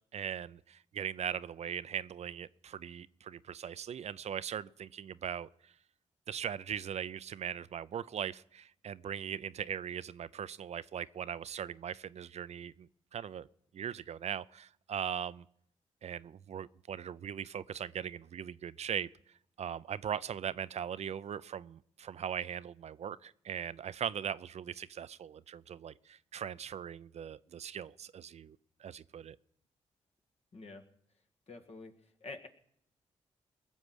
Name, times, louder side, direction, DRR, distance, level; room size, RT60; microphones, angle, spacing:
voice 1, 0.1-5.7 6.3-13.5 13.7-15.4 16.0-19.1 19.6-29.4, right 8 dB, 60° right, 0.5 m, -40 dB
voice 2, 30.5-30.8 31.5-31.9 32.2-32.5, left 3 dB, 55° left, 2.0 m, -46 dB
20.5 x 7.2 x 6.3 m
supercardioid pair, 50°, 13 cm